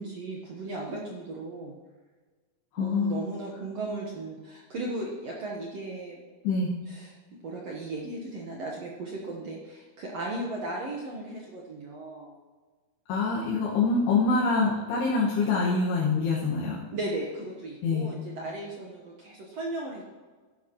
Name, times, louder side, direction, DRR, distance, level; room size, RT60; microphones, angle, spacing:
voice 1, 0.0-1.7 2.8-6.2 6.9-7.1 7.4-12.3 16.9-20.1, right 2 dB, 65° right, -2 dB, 1.6 m, -36 dB
voice 2, 2.7-3.2 6.4-6.7 13.1-16.8 17.8-18.1, left 4 dB, 90° left, -7 dB, 3.7 m, -25 dB
14.0 x 11.5 x 3.0 m, 1.4 s
omnidirectional pair, 4.6 m